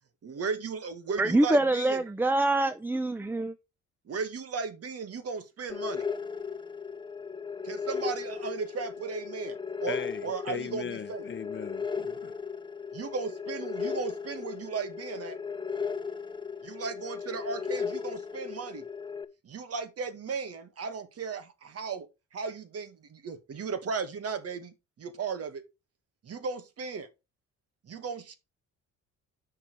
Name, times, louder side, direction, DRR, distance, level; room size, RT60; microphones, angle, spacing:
voice 1, 0.2-2.0 4.1-6.1 7.6-11.2 12.9-15.4 16.6-18.9 19.4-22.1 22.3-25.6 26.2-27.1 27.8-28.4, right 5 dB, 55° right, 1.9 m, -36 dB
voice 2, 1.2-3.5, right 2 dB, 5° right, 0.6 m, -25 dB
sound 1, 5.7-19.2, left 6 dB, 15° left, 1.2 m, -36 dB
voice 3, 9.9-12.3, left 7 dB, 40° left, 0.9 m, -39 dB
8.7 x 6.5 x 4.7 m
cardioid pair, 90°, 30 cm